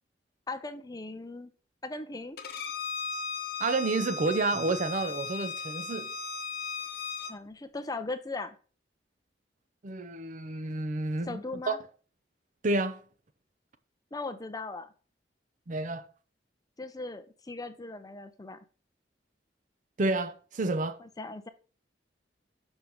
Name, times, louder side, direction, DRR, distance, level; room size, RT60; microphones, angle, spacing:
voice 1, 0.5-1.5 1.8-2.4 7.2-8.6 11.3-11.8 14.1-14.9 16.8-18.6 21.0-21.5, left 3 dB, 20° left, 0.5 m, -38 dB
Bowed string instrument, 2.4-7.3, left 4 dB, 60° left, 0.9 m, -36 dB
voice 2, 3.6-6.1 9.8-11.4 11.7-11.8 12.6-13.0 15.7-16.1 20.0-21.0, right 3 dB, 45° right, 0.6 m, -29 dB
5.4 x 5.0 x 4.4 m
head